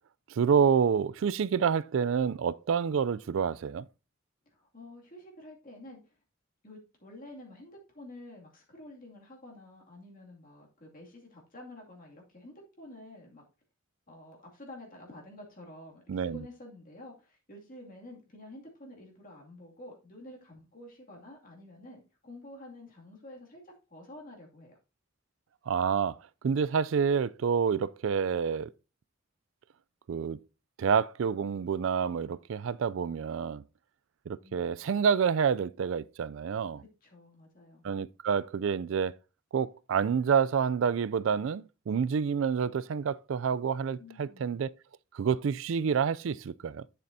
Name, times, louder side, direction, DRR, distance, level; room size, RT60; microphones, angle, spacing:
voice 1, 0.3-3.9 16.1-16.4 25.7-26.2 26.4-28.7 30.1-30.4 30.8-33.6 34.3-36.8 37.8-39.2 39.5-44.7 45.1-46.8, right 6 dB, 65° right, 0.4 m, -28 dB
voice 2, 4.5-6.1 6.6-13.4 14.1-24.8 34.4-34.7 37.0-37.9 44.0-44.6, left 1 dB, 40° left, 2.4 m, -49 dB
11.5 x 6.8 x 2.7 m
head